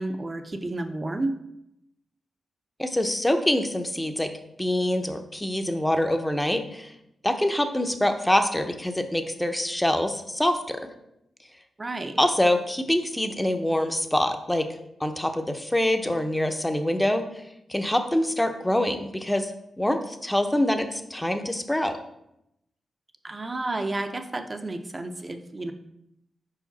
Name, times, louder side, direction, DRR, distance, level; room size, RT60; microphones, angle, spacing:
voice 1, 0.0-1.4 11.8-12.1 23.2-25.7, right 2 dB, 35° right, 7 dB, 0.7 m, -31 dB
voice 2, 2.8-4.3 4.6-6.9 7.2-10.9 12.2-14.7 15.0-17.4 17.7-19.5 19.8-22.0, left 1 dB, 10° left, 7 dB, 0.8 m, -25 dB
5.1 x 4.9 x 4.1 m, 0.82 s
cardioid pair, 50°, 0 cm